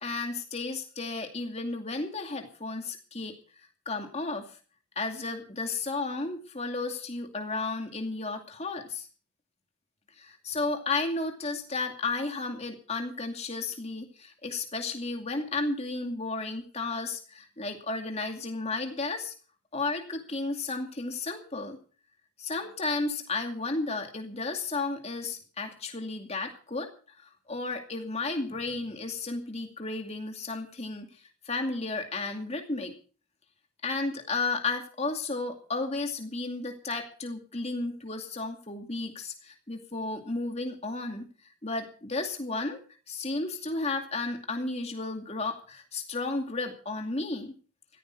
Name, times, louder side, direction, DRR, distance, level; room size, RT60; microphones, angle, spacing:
voice 1, 0.0-3.3 3.9-4.5 5.0-9.1 10.2-19.3 19.7-21.8 22.4-26.9 27.2-31.1 31.4-32.9 33.8-41.3 41.6-42.8 43.1-47.5, left 3 dB, 30° left, 4 dB, 2.4 m, -33 dB
16.5 x 14.5 x 4.7 m, 0.40 s
head